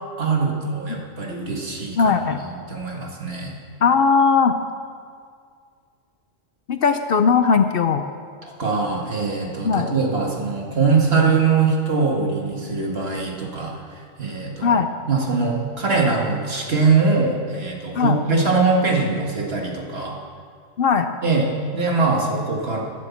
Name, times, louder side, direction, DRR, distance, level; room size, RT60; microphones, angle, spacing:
voice 1, 0.2-2.2 2.7-3.5 8.4-13.7 14.2-14.8 15.1-20.2 21.2-22.8, right 4 dB, 55° right, -1 dB, 2.1 m, -22 dB
voice 2, 2.0-2.4 3.8-4.5 6.7-8.0 9.6-9.9 14.6-14.9 17.9-18.2 20.8-21.1, left 5 dB, 60° left, 8 dB, 0.7 m, -18 dB
12.5 x 9.8 x 7.2 m, 2.1 s
omnidirectional pair, 1.2 m